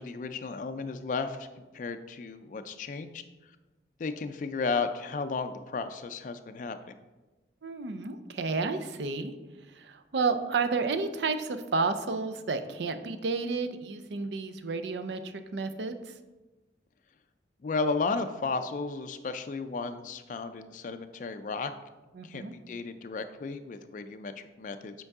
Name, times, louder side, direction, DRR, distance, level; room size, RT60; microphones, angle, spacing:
voice 1, 0.0-3.2 4.0-6.9 17.6-21.7 22.2-24.9, left 4 dB, 45° left, 8 dB, 0.3 m, -34 dB
voice 2, 7.6-9.3 9.7-16.1 22.1-22.6, right 4 dB, 70° right, 9 dB, 0.5 m, -31 dB
8.0 x 4.5 x 3.6 m, 1.2 s
head